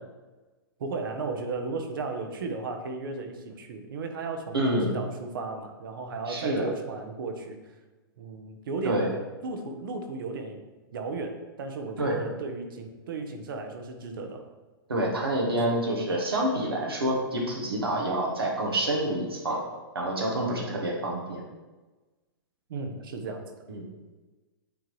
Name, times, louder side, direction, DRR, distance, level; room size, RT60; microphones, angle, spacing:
voice 1, 0.8-7.7 8.2-9.1 9.4-10.6 10.9-14.5 22.7-23.4, right 3 dB, 65° right, 5 dB, 1.0 m, -35 dB
voice 2, 4.5-4.9 6.3-6.7 8.8-9.1 12.0-12.2 14.9-19.6 19.9-21.4 23.7-23.8, right 1 dB, 85° right, -2 dB, 1.3 m, -27 dB
8.6 x 3.7 x 3.2 m, 1.2 s
figure-of-eight pair, 105°, 12 cm